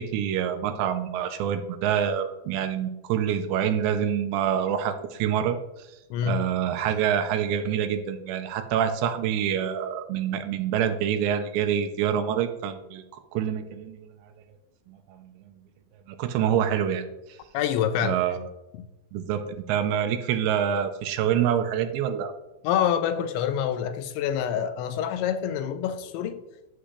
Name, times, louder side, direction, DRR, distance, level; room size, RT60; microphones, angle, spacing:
voice 1, 0.0-5.9 6.2-14.1 14.9-15.3 16.1-17.0 18.0-18.4 19.1-19.4 19.7-22.3, right 9 dB, 80° right, 8 dB, 2.9 m, -26 dB
voice 2, 6.1-6.4 17.5-18.2 18.8-18.9 22.6-26.4, left 9 dB, 85° left, 9 dB, 3.1 m, -26 dB
10.0 x 7.8 x 3.3 m, 0.97 s
omnidirectional pair, 5.2 m